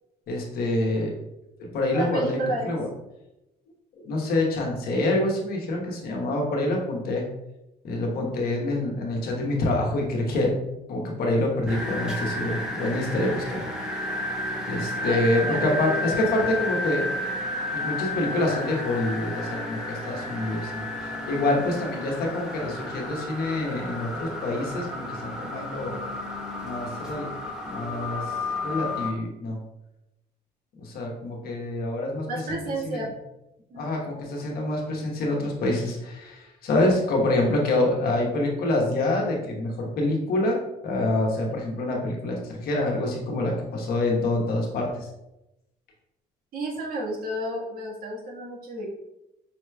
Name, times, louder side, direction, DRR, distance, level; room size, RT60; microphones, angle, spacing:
voice 1, 0.3-1.1 1.6-2.4 2.6-2.9 4.0-7.2 7.8-13.6 14.7-17.0 17.7-26.1 26.6-27.3 27.6-28.3 28.6-29.6 30.8-33.0 33.7-45.1, left 2 dB, 65° left, 0 dB, 1.1 m, -26 dB
voice 2, 1.9-2.7 15.0-16.2 16.5-16.6 21.4-21.6 32.3-33.1 33.7-33.9 46.5-48.9, right 1 dB, 60° right, -3 dB, 1.4 m, -31 dB
sound 1, 11.7-29.1, left 1 dB, 5° right, 0.9 m, -32 dB
5.6 x 3.0 x 2.3 m, 0.90 s
cardioid pair, 110°, 17 cm